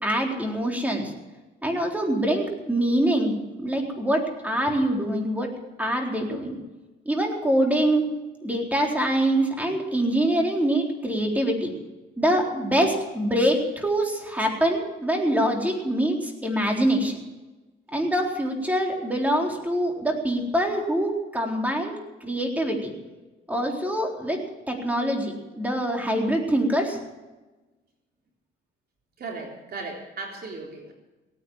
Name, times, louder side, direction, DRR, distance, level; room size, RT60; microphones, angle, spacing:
voice 1, 0.0-1.1 1.6-5.5 5.8-6.6 7.1-8.0 8.4-11.7 12.2-17.2 17.9-22.9 23.5-24.4 24.7-27.0, right 1 dB, 10° right, 1 dB, 4.0 m, -24 dB
voice 2, 29.2-30.9, right 3 dB, 55° right, 0 dB, 3.8 m, -36 dB
17.5 x 9.8 x 7.4 m, 1.1 s
cardioid pair, 90°, 20 cm